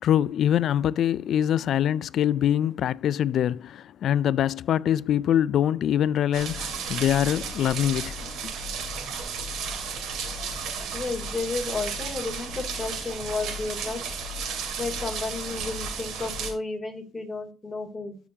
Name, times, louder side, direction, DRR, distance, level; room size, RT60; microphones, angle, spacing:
voice 1, 0.0-8.5, left 10 dB, 70° left, 0.3 m, -24 dB
sound 1, 6.3-16.5, right 4 dB, 85° right, 2.3 m, -33 dB
voice 2, 10.9-14.1 14.8-18.2, left 3 dB, 20° left, 3.0 m, -32 dB
13.0 x 4.9 x 2.8 m
cardioid pair, 90°, 0 cm